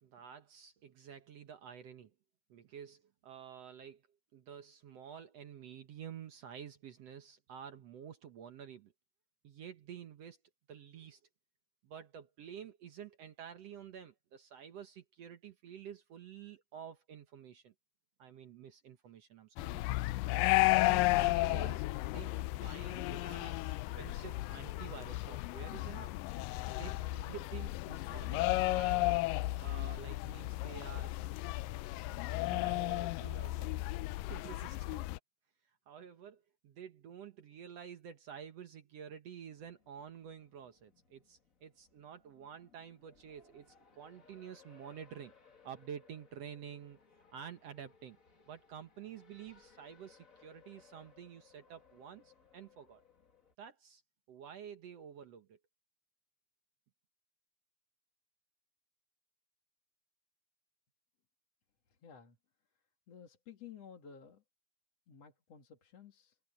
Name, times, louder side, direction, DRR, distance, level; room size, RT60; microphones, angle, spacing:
voice 1, 0.0-2.1 2.5-4.0 4.3-8.9 9.4-10.4 10.7-11.2 11.8-17.7 18.2-19.8 20.5-21.9 22.1-26.2 26.7-29.3 29.6-31.4 32.5-33.7 34.3-35.1 35.9-45.3 45.6-47.0 47.3-48.2 48.5-53.0 53.6-54.0 54.3-55.6, right 8 dB, 60° right, 1.9 m, -50 dB
sound 1, 19.6-35.2, left 20 dB, 85° left, 2.2 m, -33 dB
Race car auto racing, 39.5-53.5, left 5 dB, 30° left, 2.1 m, -65 dB
voice 2, 61.9-62.4 63.1-64.4 65.1-66.4, left 7 dB, 50° left, 3.3 m, -54 dB
omnidirectional pair, 3.9 m